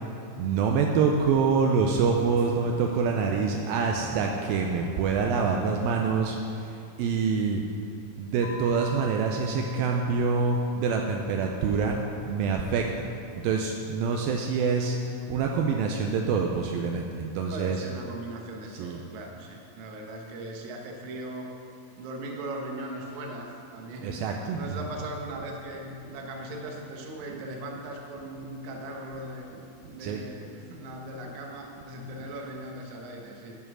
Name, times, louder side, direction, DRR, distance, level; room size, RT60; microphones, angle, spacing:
voice 1, 0.4-7.6 8.2-12.0 12.2-13.1 13.4-15.0 15.3-17.8 18.7-19.0 24.0-24.6 27.3-27.4 30.0-30.2, right 5 dB, 80° right, 2 dB, 2.3 m, -26 dB
sound 1, 1.3-6.3, right 1 dB, 50° left, 1.0 m, -44 dB
sound 2, 8.4-15.4, right 1 dB, 80° left, 2.6 m, -47 dB
voice 2, 17.5-21.5 22.0-24.2 24.5-29.5 29.9-33.6, right 1 dB, 65° right, 1 dB, 2.1 m, -39 dB
11.0 x 5.6 x 6.2 m, 2.8 s
omnidirectional pair, 4.3 m